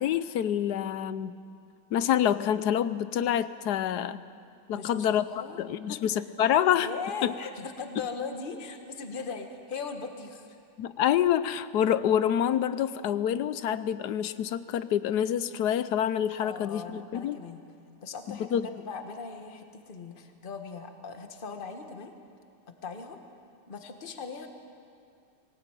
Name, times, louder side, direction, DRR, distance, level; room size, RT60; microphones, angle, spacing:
voice 1, 0.0-1.3 1.9-4.2 4.7-6.9 7.2-7.3 10.8-17.4 18.3-18.7, left 10 dB, 70° left, 14 dB, 1.2 m, -27 dB
voice 2, 4.7-5.6 5.9-6.2 6.8-10.6 16.4-17.6 18.0-22.1 22.8-23.2 23.7-24.5, left 5 dB, 30° left, 6 dB, 1.5 m, -39 dB
22.5 x 18.5 x 9.1 m, 2.4 s
omnidirectional pair, 2.0 m